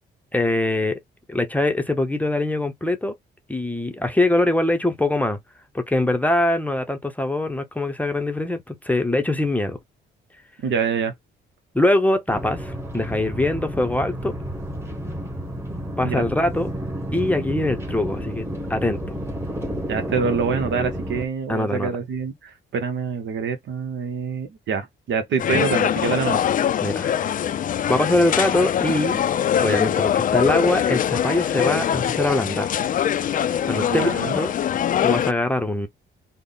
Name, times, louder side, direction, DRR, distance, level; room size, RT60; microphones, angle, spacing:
voice 1, 0.3-1.0 1.3-3.1 3.5-5.4 5.7-9.8 11.7-14.4 16.0-16.7 17.1-18.4 18.7-19.2 21.5-21.9 25.5-25.7 26.8-27.2 27.9-29.2 29.6-32.7 33.6-34.5 35.0-35.9, left 1 dB, 10° left, 0.6 m, -23 dB
voice 2, 10.6-11.1 16.0-16.3 19.9-26.4 33.8-34.4, right 6 dB, 70° right, 0.8 m, -26 dB
sound 1, 12.3-21.2, equal, 10° right, 1.1 m, -31 dB
sound 2, 25.4-35.3, left 9 dB, 45° left, 0.4 m, -23 dB
3.5 x 2.1 x 3.8 m
cardioid pair, 90°, 20 cm